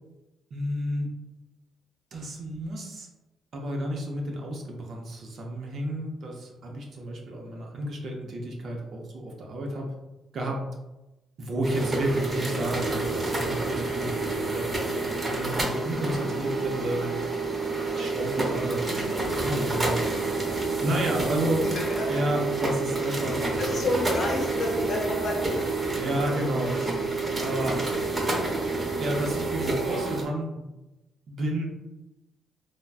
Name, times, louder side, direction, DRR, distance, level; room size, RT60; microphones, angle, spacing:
voice 1, 0.5-1.1 2.1-3.1 3.5-9.9 10.3-10.6 11.4-14.7 15.3-17.1 18.0-20.3 20.8-21.6 22.1-23.5 25.9-27.9 29.0-30.7 31.3-31.7, right 1 dB, 55° right, 1 dB, 0.6 m, -31 dB
sound 1, 11.6-30.3, right 3 dB, 25° right, 0.7 m, -28 dB
voice 2, 21.5-22.2 22.6-23.0 23.6-25.7 26.1-26.3 28.3-28.4, left 2 dB, 55° left, -2 dB, 0.9 m, -31 dB
3.3 x 2.1 x 2.4 m, 1.0 s
cardioid pair, 90°, 0 cm